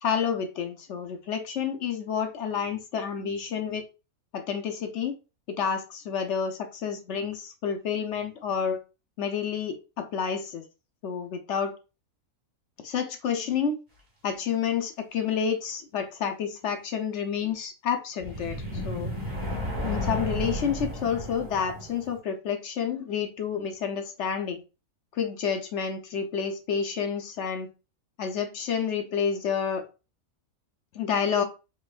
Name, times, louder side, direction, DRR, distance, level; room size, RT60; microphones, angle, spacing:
voice 1, 0.0-3.8 4.3-5.1 5.5-8.8 9.2-10.6 11.0-11.7 12.8-13.8 14.2-19.1 19.8-24.6 25.1-27.7 28.2-29.8 30.9-31.4, left 7 dB, 60° left, 0.9 m, -29 dB
sound 1, 18.2-22.2, left 1 dB, 15° right, 1.3 m, -33 dB
5.4 x 3.0 x 2.3 m
omnidirectional pair, 1.6 m